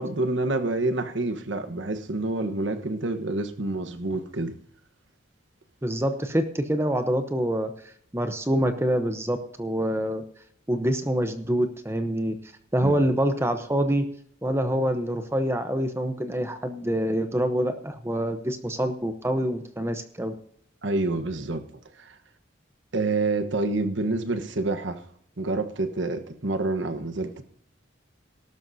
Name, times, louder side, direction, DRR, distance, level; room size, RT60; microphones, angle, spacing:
voice 1, 0.0-4.6 12.8-13.0 20.8-21.6 22.0-22.2 22.9-25.0 25.4-27.4, right 2 dB, 65° right, 1.2 m, -28 dB
voice 2, 5.8-10.2 10.7-12.4 12.7-14.1 14.4-20.3, equal, 15° right, 0.8 m, -26 dB
18.5 x 12.0 x 2.7 m
head